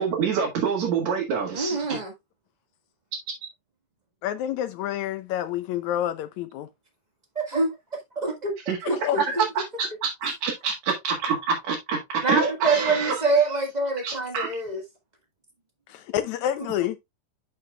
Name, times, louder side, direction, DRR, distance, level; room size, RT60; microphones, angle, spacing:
voice 1, 0.0-2.0 8.7-8.9 9.2-9.3 9.8-13.1 13.5-13.6 14.0-14.5, right 6 dB, 60° right, 3.0 m, -26 dB
voice 2, 1.5-2.1 7.3-7.7 8.2-8.5 8.9-9.0 12.2-14.8, right 3 dB, 80° right, 0.4 m, -25 dB
voice 3, 4.2-6.7 8.8-9.2 15.9-17.0, left 11 dB, 80° left, 1.8 m, -28 dB
10.5 x 5.8 x 2.3 m
omnidirectional pair, 3.8 m